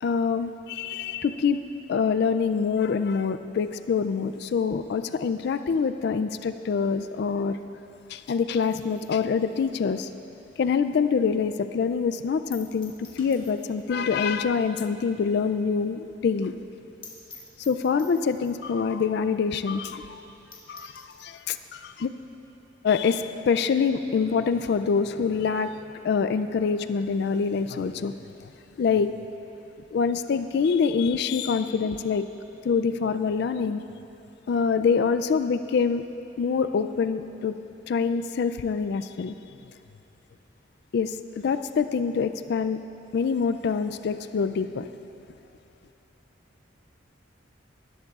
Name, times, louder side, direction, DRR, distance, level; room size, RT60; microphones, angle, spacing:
voice 1, 0.0-1.6 1.9-7.6 8.1-10.1 10.6-16.5 17.7-20.2 20.7-22.1 22.8-25.8 26.0-28.1 28.4-28.5 28.8-29.2 29.9-32.3 32.6-33.8 34.5-36.0 36.4-37.5 37.9-39.3 40.9-42.8 43.1-44.9, left 5 dB, 60° left, 10 dB, 0.3 m, -25 dB
sound 1, 8.5-11.2 11.5-11.6 11.9-12.0 12.5-13.9 14.2-14.3 14.6-14.7 15.1-15.2 15.4-15.5 15.8-15.9 16.2-16.3 16.7-16.8 17.0-18.7 19.4-19.5 19.8-19.9 20.2-20.3 20.5-21.5, left 4 dB, 25° left, 1.5 m, -50 dB
17.0 x 11.5 x 2.4 m, 2.9 s
head